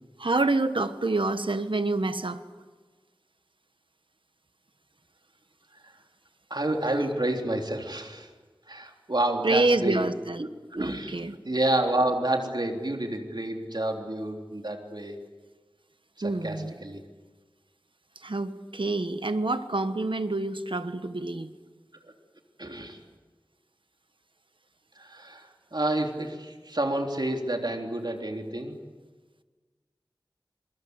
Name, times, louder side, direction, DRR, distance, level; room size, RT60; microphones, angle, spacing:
voice 1, 0.2-2.4 9.4-10.4 10.8-11.3 16.2-16.7 18.2-21.5, right 2 dB, 85° right, 10 dB, 1.3 m, -27 dB
voice 2, 6.5-8.3 8.7-10.0 10.4-11.2 11.4-15.2 16.2-17.0 22.6-23.0 25.0-28.8, right 1 dB, 60° right, 3 dB, 3.5 m, -29 dB
27.5 x 23.0 x 8.1 m, 1.3 s
wide cardioid pair, 40°, 8 cm